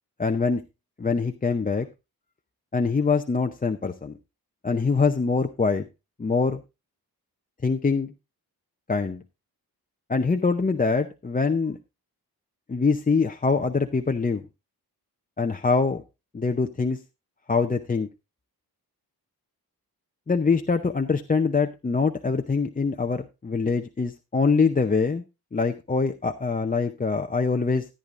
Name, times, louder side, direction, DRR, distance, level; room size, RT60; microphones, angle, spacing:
voice 1, 0.2-0.6 1.0-1.9 2.7-4.2 4.6-5.9 6.2-6.6 7.6-8.1 8.9-9.2 10.1-11.8 12.7-14.4 15.4-16.0 16.3-17.0 17.5-18.1 20.3-25.2 25.5-27.9, left 4 dB, 25° left, 5 dB, 0.6 m, -24 dB
14.0 x 9.8 x 2.5 m, 0.26 s
wide cardioid pair, 125°, 38 cm